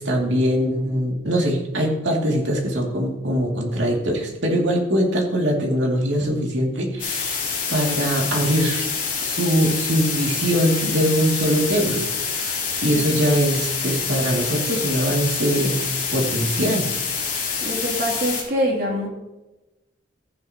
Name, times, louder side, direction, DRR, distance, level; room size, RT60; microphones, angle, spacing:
voice 1, 0.0-8.9 9.2-12.0 12.3-12.5 12.8-15.8 16.1-16.9, equal, 80° right, -1 dB, 2.5 m, -22 dB
sound 1, 7.0-18.4, left 5 dB, 45° left, 3.4 m, -26 dB
voice 2, 17.6-19.1, equal, 50° right, -2 dB, 2.9 m, -24 dB
14.5 x 9.5 x 2.9 m, 1.0 s
head